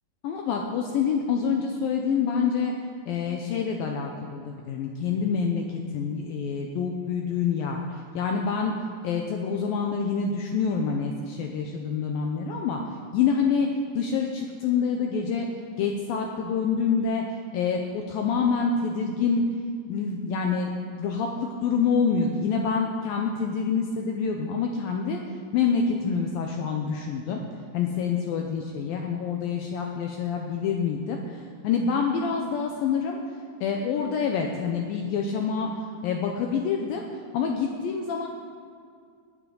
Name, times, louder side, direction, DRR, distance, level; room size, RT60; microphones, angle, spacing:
voice 1, 0.2-2.7 3.1-8.8 9.0-12.8 13.1-13.7 14.0-15.5 15.8-17.2 17.5-19.4 19.9-25.2 25.5-27.4 27.7-33.2 33.6-35.7 36.0-37.0 37.3-38.3, left 6 dB, 75° left, 2 dB, 2.2 m, -27 dB
19.5 x 9.3 x 3.9 m, 2.2 s
omnidirectional pair, 4.8 m